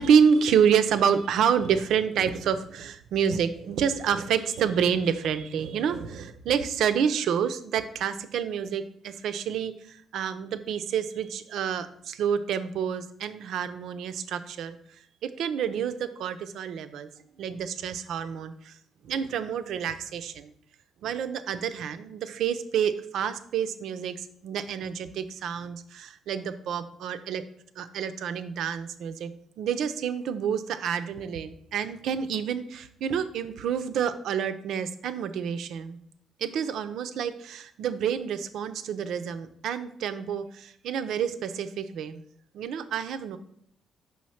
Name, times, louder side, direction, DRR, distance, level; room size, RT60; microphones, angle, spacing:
voice 1, 0.0-14.8 15.2-17.1 17.4-18.7 19.0-20.5 21.0-27.4 27.8-36.0 36.4-42.2 42.5-43.4, right 7 dB, 75° right, 10 dB, 0.4 m, -28 dB
5.4 x 3.2 x 5.6 m, 0.66 s
cardioid pair, 90°, 0 cm